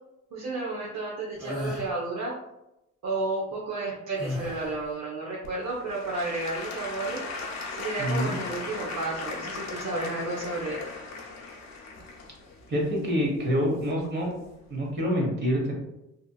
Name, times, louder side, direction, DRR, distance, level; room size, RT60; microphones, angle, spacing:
voice 1, 0.3-2.4 3.0-7.2 7.7-10.8, right 2 dB, 60° right, -4 dB, 0.7 m, -32 dB
sound 1, 1.4-1.9 4.2-4.8, left 1 dB, 5° right, 1.2 m, -34 dB
Applause / Crowd, 5.4-14.3 14.9-15.0, left 3 dB, 60° left, 0.7 m, -38 dB
voice 2, 8.0-8.4 12.7-14.3 14.7-15.7, equal, 35° right, -2 dB, 1.2 m, -26 dB
2.8 x 2.4 x 2.3 m, 0.89 s
cardioid pair, 90°, 30 cm